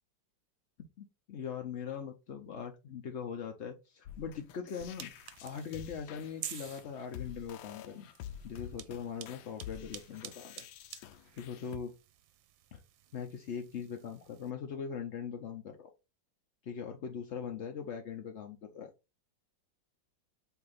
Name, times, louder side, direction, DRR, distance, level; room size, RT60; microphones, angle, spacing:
voice 1, 1.0-5.1 5.4-8.1 8.4-10.7 10.9-11.9 12.7-12.8 13.1-15.9 16.6-18.9, left 7 dB, 60° left, 3 dB, 0.7 m, -41 dB
sound 1, 4.0-11.8, left 10 dB, 85° left, 1.3 m, -49 dB
sound 2, 4.8-14.5, right 12 dB, 85° right, 1.4 m, -50 dB
8.0 x 2.8 x 4.1 m, 0.28 s
omnidirectional pair, 2.0 m